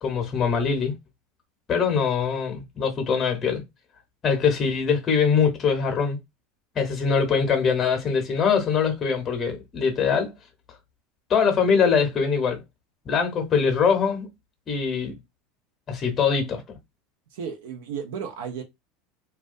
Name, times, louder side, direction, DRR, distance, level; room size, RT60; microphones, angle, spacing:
voice 1, 0.0-0.9 1.7-3.6 4.2-6.2 6.8-10.3 11.3-12.6 13.0-14.3 14.7-15.2 15.9-16.8, left 6 dB, 35° left, 0.9 m, -23 dB
voice 2, 17.3-18.6, right 7 dB, 70° right, 0.6 m, -33 dB
2.3 x 2.2 x 2.5 m
hypercardioid pair, 80°, 0 cm